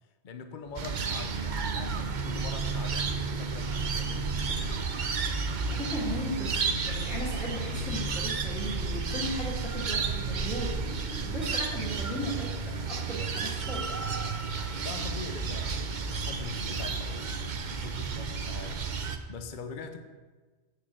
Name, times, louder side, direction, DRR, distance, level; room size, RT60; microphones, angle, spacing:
voice 1, 0.2-4.9 14.7-17.4 17.7-18.8 19.3-20.0, left 5 dB, 50° left, 7 dB, 0.9 m, -43 dB
sound 1, 0.6-18.7, left 1 dB, 70° left, 2.9 m, -51 dB
sound 2, 0.8-19.2, right 4 dB, 50° right, 0.8 m, -32 dB
sound 3, 4.7-6.0 6.7-7.9 9.4-11.2 11.8-15.3, right 1 dB, 70° right, 1.3 m, -46 dB
voice 2, 5.3-14.0, equal, 5° left, -8 dB, 2.4 m, -37 dB
8.9 x 6.7 x 7.8 m, 1.3 s
omnidirectional pair, 1.1 m